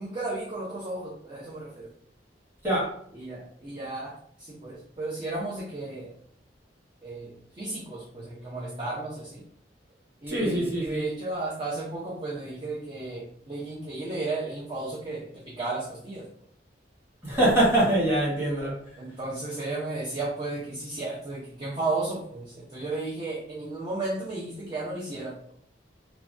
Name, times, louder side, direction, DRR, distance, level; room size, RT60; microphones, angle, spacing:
voice 1, 0.0-1.9 3.1-4.1 4.4-6.1 7.0-9.4 10.2-16.2 19.0-25.3, right 2 dB, 30° right, -7 dB, 0.6 m, -34 dB
voice 2, 10.3-11.0 17.2-18.8, right 1 dB, 15° right, -8 dB, 1.4 m, -23 dB
3.1 x 2.2 x 2.5 m, 0.64 s
head